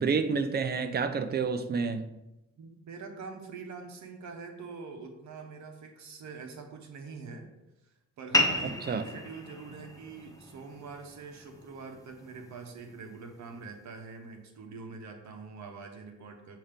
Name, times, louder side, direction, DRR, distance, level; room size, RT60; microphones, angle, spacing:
voice 1, 0.0-2.1 8.6-9.0, right 5 dB, 35° right, 10 dB, 0.6 m, -29 dB
voice 2, 2.6-7.5 7.8-16.6, right 4 dB, 65° right, 4 dB, 1.1 m, -44 dB
sound 1, 8.3-13.4, left 1 dB, 10° left, 0.8 m, -34 dB
7.1 x 2.9 x 5.1 m, 0.92 s
cardioid pair, 90°, 30 cm